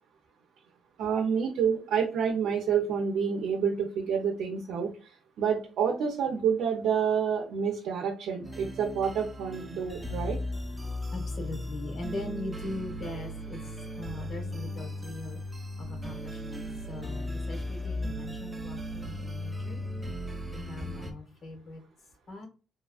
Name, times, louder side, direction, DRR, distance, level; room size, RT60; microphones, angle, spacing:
voice 1, 1.0-4.9 5.4-10.4, right 7 dB, 80° right, 2 dB, 0.6 m, -28 dB
sound 1, 8.4-21.1, left 1 dB, 15° right, 0.6 m, -37 dB
voice 2, 11.1-15.4 15.8-19.8 20.5-21.8 22.3-22.5, left 2 dB, 55° left, 3 dB, 1.2 m, -40 dB
3.1 x 2.4 x 2.3 m, 0.35 s
cardioid pair, 90°, 0 cm